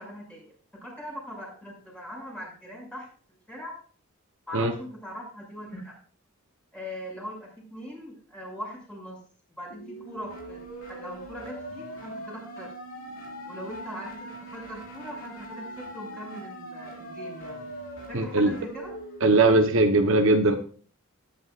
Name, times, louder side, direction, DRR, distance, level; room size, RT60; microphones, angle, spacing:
voice 1, 0.0-3.1 3.5-3.8 4.5-5.9 6.7-9.2 9.6-12.7 13.5-17.7 18.1-18.9, equal, 5° left, -3 dB, 6.4 m, -41 dB
sound 1, 9.7-19.7, right 1 dB, 70° left, 5.4 m, -41 dB
voice 2, 18.1-18.5 19.2-20.6, right 2 dB, 60° right, 5 dB, 1.1 m, -20 dB
19.0 x 10.5 x 2.5 m, 0.43 s
head